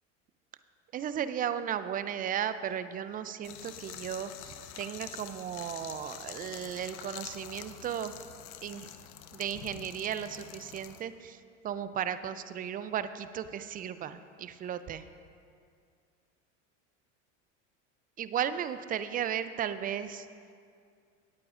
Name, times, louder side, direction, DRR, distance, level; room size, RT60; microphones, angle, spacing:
voice 1, 0.9-8.1 8.6-8.9 9.3-11.4 11.6-15.0 18.2-20.3, right 9 dB, 25° right, 12 dB, 0.4 m, -35 dB
sound 1, 3.4-11.0, left 11 dB, 65° left, 0.8 m, -46 dB
18.0 x 8.6 x 2.5 m, 2.3 s
hypercardioid pair, 95°, 38 cm